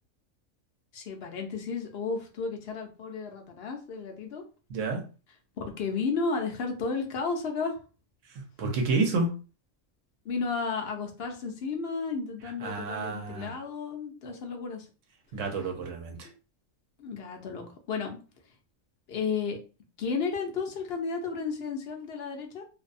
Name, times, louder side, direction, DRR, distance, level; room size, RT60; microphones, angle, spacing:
voice 1, 0.9-4.4 5.6-7.8 10.2-14.9 17.0-18.2 19.1-19.6 20.0-22.6, left 4 dB, 60° left, 3 dB, 0.7 m, -33 dB
voice 2, 4.7-5.1 8.3-9.4 12.6-13.5 15.3-16.3, right 3 dB, 70° right, 3 dB, 1.0 m, -30 dB
2.6 x 2.2 x 2.5 m, 0.34 s
omnidirectional pair, 1.4 m